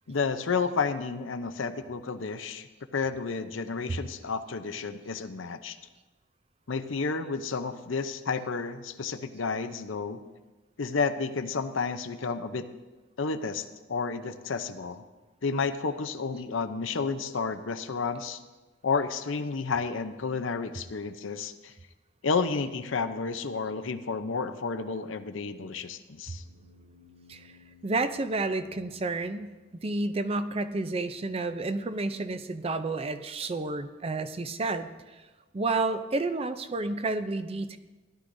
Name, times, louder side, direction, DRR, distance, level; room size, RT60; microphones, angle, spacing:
voice 1, 0.1-2.7 2.9-5.8 6.7-10.2 10.8-12.7 13.2-15.0 15.4-18.4 18.8-21.7 22.2-26.4, left 4 dB, 85° left, 9 dB, 0.7 m, -31 dB
sound 1, 26.3-30.0, left 4 dB, 65° right, 3.6 m, -58 dB
voice 2, 27.8-29.5 29.8-34.9 35.5-37.8, right 3 dB, 30° right, 10 dB, 0.5 m, -30 dB
17.0 x 11.5 x 2.7 m, 1.2 s
head